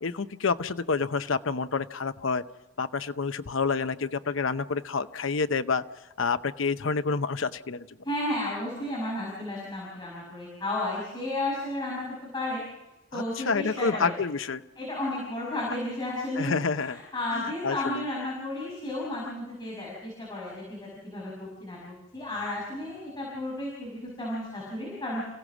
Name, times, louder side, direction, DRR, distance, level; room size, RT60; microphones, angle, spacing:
voice 1, 0.0-2.4 2.8-5.8 6.2-7.9 13.1-14.6 16.3-17.0 17.3-18.1, left 4 dB, 70° left, 11 dB, 0.7 m, -28 dB
voice 2, 8.0-12.0 12.3-12.6 13.1-14.2 14.8-25.2, left 1 dB, 20° left, -5 dB, 5.7 m, -33 dB
28.5 x 16.5 x 6.2 m, 1.0 s
head